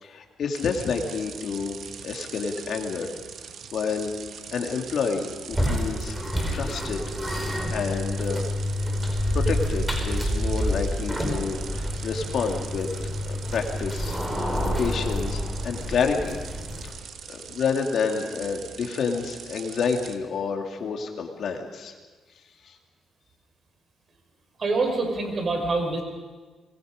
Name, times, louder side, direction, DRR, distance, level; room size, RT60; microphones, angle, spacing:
voice 1, 0.0-3.1 3.7-4.1 4.5-6.2 6.5-7.0 7.3-8.5 9.3-12.9 13.3-14.2 14.5-16.4 16.8-17.0 17.3-21.9 22.6-22.7, left 5 dB, 60° left, 3 dB, 2.7 m, -29 dB
sound 1, 0.5-20.2, right 7 dB, 65° right, 1.5 m, -42 dB
sound 2, 5.5-16.9, equal, 10° right, 5.1 m, -28 dB
voice 2, 24.6-26.0, right 3 dB, 40° right, 3 dB, 5.5 m, -25 dB
27.5 x 22.0 x 5.3 m, 1.4 s
cardioid pair, 90°, 0 cm